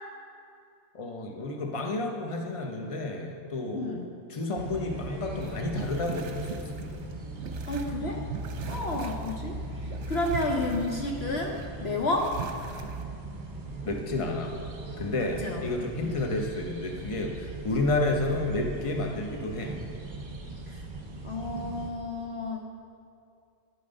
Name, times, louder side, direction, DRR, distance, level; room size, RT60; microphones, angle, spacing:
voice 1, 0.9-4.0 4.3-6.6 8.7-8.8 13.8-14.6 15.0-19.7, left 2 dB, 25° left, 2 dB, 1.0 m, -31 dB
voice 2, 3.7-4.1 7.7-8.2 8.7-9.6 10.1-11.6 11.8-12.3 15.4-16.2 20.7-20.8 21.2-22.7, left 2 dB, 55° left, 1 dB, 1.0 m, -31 dB
sound 1, 4.5-21.9, right 2 dB, 35° right, 1.3 m, -39 dB
sound 2, 5.4-7.9 8.2-9.3 9.7-11.7 12.0-13.0, right 6 dB, 60° right, 1.0 m, -40 dB
11.0 x 9.3 x 5.3 m, 2.5 s
omnidirectional pair, 1.4 m